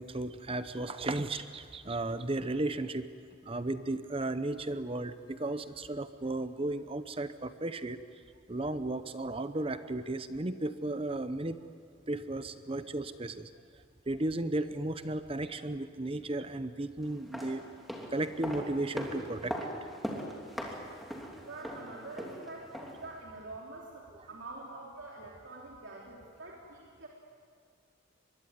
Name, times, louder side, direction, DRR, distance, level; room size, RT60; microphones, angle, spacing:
voice 1, 0.0-3.1 3.5-8.0 8.5-11.6 12.1-13.5 14.1-17.6 18.1-19.6, right 2 dB, 25° right, 11 dB, 0.8 m, -34 dB
sound 1, 17.1-23.1 23.4-23.5, equal, ahead, 3.0 m, -40 dB
voice 2, 21.4-27.1, right 2 dB, 65° right, -2 dB, 3.1 m, -46 dB
24.0 x 22.0 x 9.6 m, 2.1 s
head